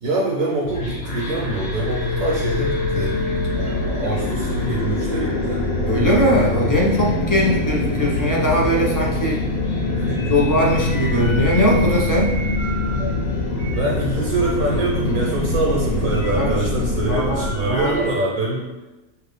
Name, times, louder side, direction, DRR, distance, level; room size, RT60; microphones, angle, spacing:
voice 1, 0.0-3.2 3.5-5.7 9.9-10.3 13.7-18.7, right 2 dB, 75° right, -3 dB, 1.2 m, -24 dB
sound 1, 0.6-18.1, left 2 dB, 80° left, 1.1 m, -23 dB
sound 2, 3.2-3.3 3.6-3.7 4.0-4.6 5.1-5.3 5.8-5.9 7.4-7.5 7.9-8.2 8.7-8.8 10.2-13.1 13.5-13.8 14.6-14.7 14.9-15.0 16.1-16.6 17.0-18.2, right 2 dB, 35° right, 0.7 m, -34 dB
voice 2, 5.8-9.4 10.3-12.3 16.3-16.7 17.1-18.1, equal, 15° left, -4 dB, 0.8 m, -20 dB
6.0 x 2.7 x 3.3 m, 1.1 s
omnidirectional pair, 1.4 m